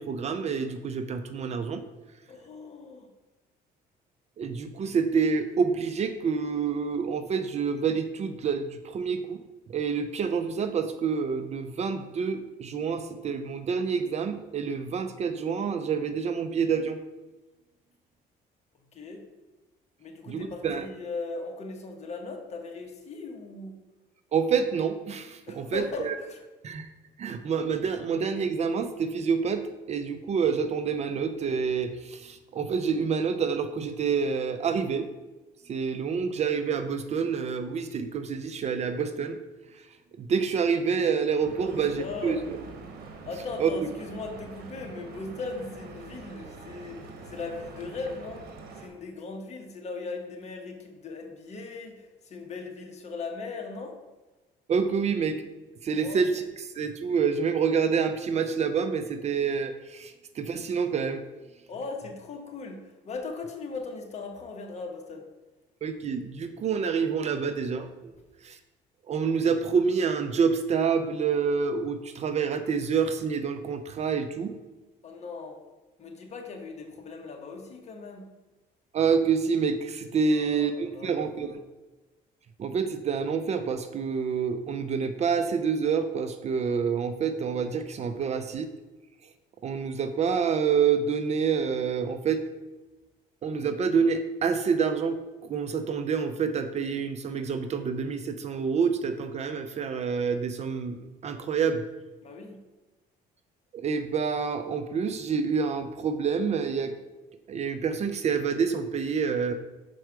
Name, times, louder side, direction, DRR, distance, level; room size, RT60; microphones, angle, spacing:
voice 1, 0.0-1.8 4.4-9.4 9.7-17.0 20.3-20.9 24.3-26.1 26.6-26.9 27.2-35.1 35.7-39.4 40.2-42.4 43.6-43.7 54.7-55.4 55.8-56.4 56.7-61.2 65.8-68.1 68.4-68.6 69.1-74.6 78.9-81.5 82.6-88.7 89.6-92.4 93.4-101.8 103.7-106.9 107.5-109.5, right 6 dB, 40° right, 9 dB, 0.5 m, -27 dB
voice 2, 2.3-3.1 18.9-19.2 20.0-23.8 25.5-26.4 41.6-42.4 43.3-48.5 48.7-54.0 56.0-56.3 61.7-65.2 75.0-75.6 76.0-78.3 80.3-81.5 102.2-102.6, left 3 dB, 40° left, 2 dB, 1.2 m, -38 dB
Stream / Boat Water vehicle, 41.4-48.9, right 4 dB, 70° right, 1.2 m, -44 dB
6.1 x 4.5 x 4.6 m, 1.1 s
cardioid pair, 110°, 17 cm